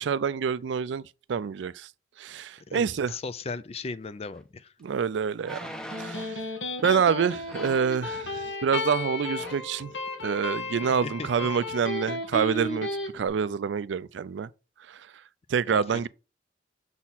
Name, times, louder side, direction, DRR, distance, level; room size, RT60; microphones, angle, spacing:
voice 1, 0.0-1.9 2.2-3.1 4.8-5.7 6.0-6.4 6.8-9.9 10.2-12.9 13.1-14.5 14.9-15.1 15.5-16.1, right 6 dB, 80° right, 0.4 m, -27 dB
voice 2, 2.7-4.7 11.0-11.3 15.7-16.1, left 4 dB, 35° left, 0.4 m, -37 dB
sound 1, 4.4-4.5 5.4-6.4 7.5-7.9 8.9-9.1 9.3-9.7 10.2-10.3, equal, 5° left, 0.7 m, -41 dB
Electric guitar, 5.7-13.1, left 2 dB, 90° left, 1.7 m, -34 dB
7.0 x 4.3 x 4.0 m
head